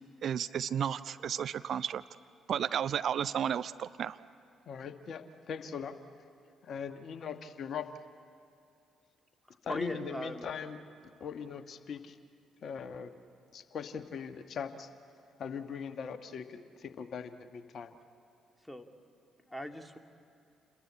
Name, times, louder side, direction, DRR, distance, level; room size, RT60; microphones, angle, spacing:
voice 1, 0.2-2.0 2.5-4.2, right 8 dB, 55° right, 14 dB, 0.5 m, -32 dB
voice 2, 4.7-5.9 6.6-7.9 9.6-10.8 11.2-12.2 12.6-13.1 13.5-14.9 15.4-17.9, left 6 dB, 50° left, 9 dB, 1.3 m, -40 dB
voice 3, 9.5-10.5 18.6-18.9 19.5-20.0, equal, 5° left, 5 dB, 2.1 m, -40 dB
28.5 x 21.5 x 8.7 m, 2.6 s
figure-of-eight pair, 40°, 0 cm